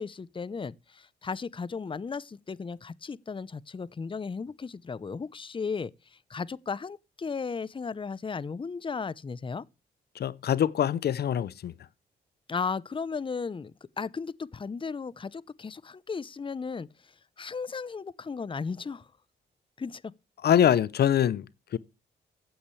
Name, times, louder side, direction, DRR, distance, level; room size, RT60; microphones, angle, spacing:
voice 1, 0.0-9.6 12.5-19.1 19.8-20.1, left 5 dB, 30° left, 0.7 m, -35 dB
voice 2, 10.2-11.7 20.4-21.4 21.7-21.8, left 9 dB, 65° left, 0.7 m, -24 dB
15.0 x 8.9 x 3.2 m
cardioid pair, 70°, 18 cm